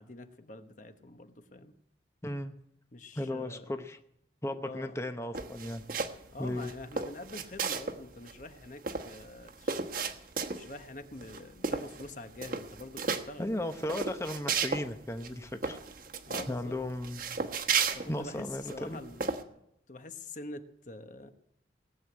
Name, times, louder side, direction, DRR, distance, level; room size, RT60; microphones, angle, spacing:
voice 1, 0.0-1.7 2.9-3.7 4.6-5.0 6.3-10.1 10.6-13.5 16.3-16.8 17.9-19.6 19.9-21.3, left 2 dB, 45° left, 9 dB, 1.1 m, -46 dB
voice 2, 2.2-2.5 3.2-4.0 4.4-5.8 6.4-6.7 13.4-15.8 16.5-17.2 18.1-19.0, left 1 dB, 15° left, 7 dB, 0.8 m, -35 dB
sound 1, 5.3-6.3 6.6-8.0 8.3-8.4 8.6-10.8 11.2-11.4 11.6-12.1 12.4-13.2 13.7-14.9 15.2-15.3 15.6-16.5 17.0-18.7 19.2-19.4, right 5 dB, 50° right, 1.3 m, -33 dB
19.0 x 7.9 x 9.6 m, 0.77 s
head